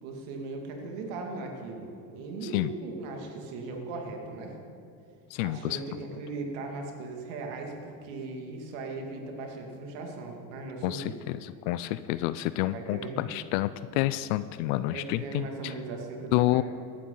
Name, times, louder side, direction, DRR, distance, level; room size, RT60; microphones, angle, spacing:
voice 1, 0.0-4.6 5.4-11.2 12.7-13.3 14.9-16.6, right 3 dB, 80° right, 2 dB, 2.4 m, -38 dB
voice 2, 5.3-5.8 10.8-15.7 16.3-16.6, left 16 dB, 75° left, 14 dB, 0.5 m, -29 dB
16.5 x 11.5 x 3.9 m, 2.5 s
supercardioid pair, 100°, 40 cm